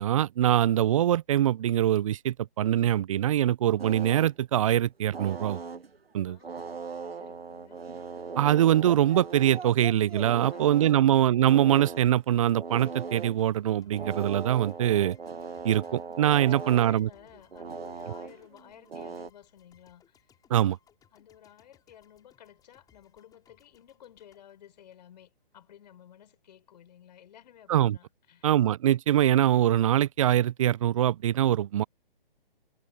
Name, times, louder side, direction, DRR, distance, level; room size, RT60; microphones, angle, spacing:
voice 1, 0.0-5.6 6.1-6.4 8.4-15.2 15.6-17.1 20.5-20.8 27.7-28.0 28.4-31.8, right 11 dB, 35° right, 0.7 m, -23 dB
sound 1, 3.8-4.3 5.1-6.0 6.4-12.1 12.5-13.4 13.9-19.3, right 5 dB, 90° right, 1.1 m, -39 dB
voice 2, 6.2-7.8 10.5-11.1 16.4-20.3 21.1-28.5, left 10 dB, 45° left, 6.4 m, -54 dB
sound 2, 13.4-25.6, left 9 dB, 10° left, 6.4 m, -66 dB
figure-of-eight pair, 140°, 29 cm